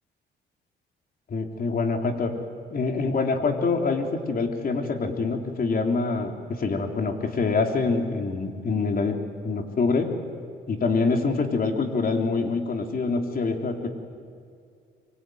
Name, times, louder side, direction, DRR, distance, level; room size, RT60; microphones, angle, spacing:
voice 1, 1.3-2.3 2.7-9.2 9.4-10.1 10.7-13.9, left 4 dB, 45° left, 4 dB, 3.6 m, -25 dB
25.5 x 24.0 x 9.4 m, 2.3 s
cardioid pair, 90°, 20 cm